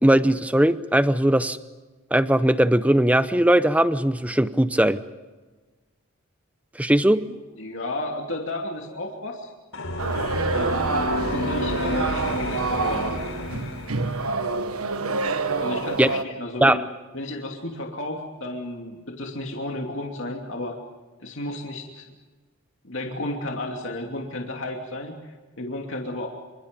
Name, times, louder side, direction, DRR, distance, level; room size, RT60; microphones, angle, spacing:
voice 1, 0.0-1.6 2.1-5.0 6.8-7.2 16.0-16.1 16.6-16.8, right 1 dB, 5° right, 13 dB, 0.7 m, -19 dB
voice 2, 7.2-9.5 10.5-10.9 11.2-13.2 15.6-16.8 17.1-20.8 21.2-22.1 22.8-26.3, left 1 dB, 60° left, 1 dB, 2.8 m, -33 dB
sound 1, 9.7-14.4, left 1 dB, 80° left, 4.3 m, -30 dB
sound 2, 10.0-16.2, right 3 dB, 85° right, 1.4 m, -27 dB
28.0 x 25.5 x 5.3 m, 1.3 s
head